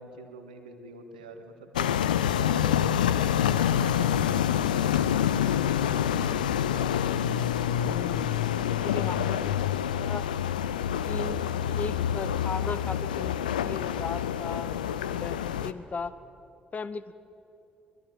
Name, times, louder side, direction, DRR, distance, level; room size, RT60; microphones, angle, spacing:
voice 1, 0.0-7.0 8.5-9.3 11.9-12.0, right 4 dB, 80° right, 6 dB, 1.9 m, -45 dB
sound 1, 1.7-15.7, left 10 dB, 80° left, 0.6 m, -27 dB
voice 2, 7.8-9.5 10.0-10.2 11.0-11.4 11.8-14.8 15.1-16.1 16.7-17.1, left 4 dB, 35° left, 15 dB, 1.0 m, -37 dB
24.0 x 20.5 x 8.8 m, 2.7 s
figure-of-eight pair, 45°, 4 cm